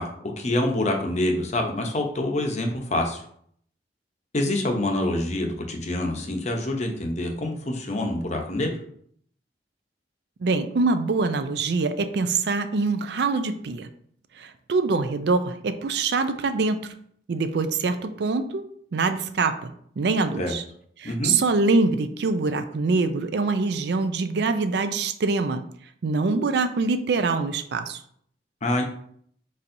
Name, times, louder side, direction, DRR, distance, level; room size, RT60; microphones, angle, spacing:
voice 1, 0.0-3.2 4.3-8.8 20.4-20.5 21.0-21.4 28.6-28.8, left 1 dB, 40° left, 3 dB, 0.7 m, -26 dB
voice 2, 10.4-13.9 14.4-16.9 17.3-18.6 18.9-20.6 21.0-25.6 26.0-28.0, right 3 dB, 70° right, 9 dB, 0.4 m, -24 dB
4.6 x 4.3 x 2.6 m, 0.64 s
head